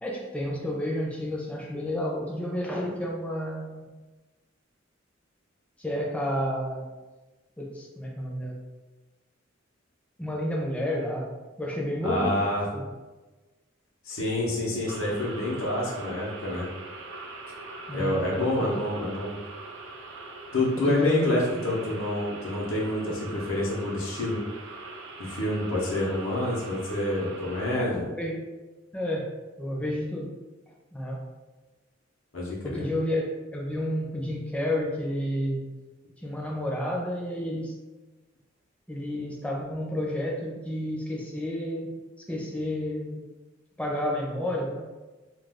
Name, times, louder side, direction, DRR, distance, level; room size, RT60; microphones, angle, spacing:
voice 1, 0.0-3.9 5.8-6.9 7.6-8.6 10.2-11.3 11.6-12.4 12.7-12.9 17.9-18.8 20.9-21.4 27.7-28.4 28.9-29.3 29.6-30.3 30.9-31.2 32.6-35.7 36.2-37.7 38.9-41.9 42.3-43.2 43.8-44.9, left 1 dB, 5° left, -2 dB, 0.4 m, -30 dB
voice 2, 12.0-12.6 14.0-16.7 17.9-19.4 20.5-24.4 25.2-28.1 32.3-32.9, left 1 dB, 80° left, -4 dB, 0.7 m, -28 dB
sound 1, 14.9-27.8, right 3 dB, 65° right, 0.4 m, -42 dB
2.4 x 2.2 x 3.4 m, 1.2 s
head